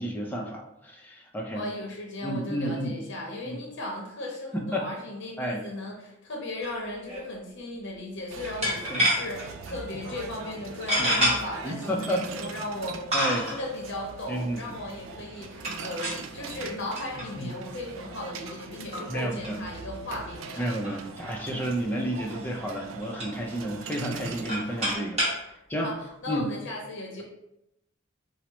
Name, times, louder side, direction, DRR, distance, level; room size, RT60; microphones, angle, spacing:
voice 1, 0.0-1.6 2.2-2.9 3.5-3.6 4.5-4.9 5.4-5.6 8.9-9.1 11.0-12.2 13.1-13.5 14.3-14.6 17.2-17.5 19.1-19.6 20.6-25.2 25.7-25.9 26.3-26.5, equal, 10° left, 0 dB, 0.4 m, -31 dB
voice 2, 1.5-13.0 13.4-20.8 25.5-27.2, left 1 dB, 65° left, 0 dB, 0.7 m, -37 dB
sound 1, 6.6-6.8 7.1-7.2 8.6-9.4 10.0-10.1 10.9-11.3 12.2-12.3 13.1-13.6 15.6-16.3 17.0-17.3 17.7-17.8 18.5-18.6 18.9-19.1 19.4-19.5 19.8-19.9 20.2-20.3 20.7-21.7 22.3-22.5 22.8-23.6 24.2-25.4, equal, 35° right, 1.1 m, -28 dB
sound 2, 8.3-25.0, right 5 dB, 80° right, 0.3 m, -42 dB
4.3 x 2.0 x 2.9 m, 0.85 s
head